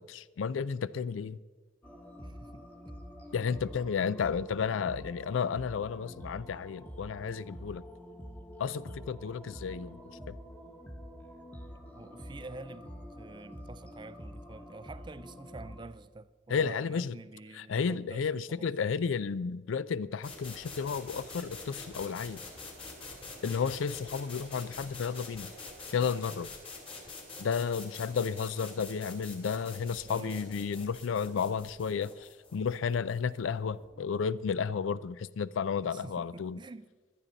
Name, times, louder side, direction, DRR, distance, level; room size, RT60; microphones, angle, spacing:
voice 1, 0.0-1.4 3.3-7.8 8.6-10.0 10.3-10.4 16.5-17.2 17.5-22.4 23.4-25.5 25.9-26.5 27.4-36.6, left 6 dB, 80° left, 0.4 m, -32 dB
sound 1, 1.8-15.9, equal, 10° left, 1.1 m, -47 dB
voice 2, 2.2-2.7 12.0-12.9 13.2-18.7 30.0-30.4 35.8-36.9, right 2 dB, 25° right, 0.4 m, -47 dB
sound 2, 20.2-33.9, left 3 dB, 30° left, 2.4 m, -46 dB
17.0 x 11.5 x 4.0 m
head